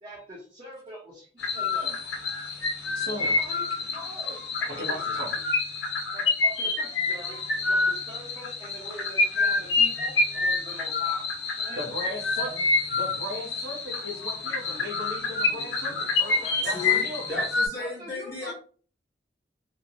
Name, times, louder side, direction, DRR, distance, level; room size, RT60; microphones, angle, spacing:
voice 1, 0.0-2.0 3.0-5.5 6.1-11.3 11.6-12.6 16.2-17.1 17.7-18.5, equal, 35° right, -6 dB, 0.7 m, -44 dB
sound 1, 1.4-17.7, left 3 dB, 85° left, 0.9 m, -27 dB
voice 2, 2.9-3.4 4.8-5.3 11.8-12.5 12.9-17.4, equal, 80° right, -4 dB, 0.7 m, -37 dB
voice 3, 16.6-18.5, left 2 dB, 15° left, -7 dB, 0.8 m, -35 dB
3.0 x 2.1 x 2.5 m, 0.41 s
head